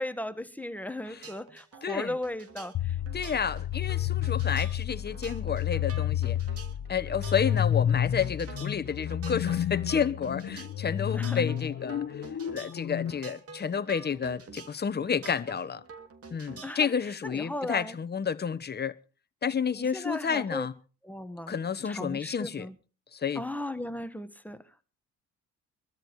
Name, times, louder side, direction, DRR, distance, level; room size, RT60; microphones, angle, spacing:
voice 1, 0.0-2.9 11.1-11.4 16.6-16.9 17.2-18.0 19.7-20.7 21.0-21.6 21.8-22.7 23.3-24.6, left 1 dB, 5° left, 1.4 m, -36 dB
sound 1, 0.9-16.9, right 5 dB, 50° right, 2.7 m, -48 dB
voice 2, 1.8-2.2 3.1-6.4 6.9-12.3 12.5-15.8 16.3-18.9 19.4-20.7 21.5-22.7 23.1-23.4, left 7 dB, 35° left, 1.1 m, -30 dB
sound 2, 2.7-13.1, left 10 dB, 55° left, 0.9 m, -30 dB
24.0 x 13.5 x 3.1 m
cardioid pair, 90°, 30 cm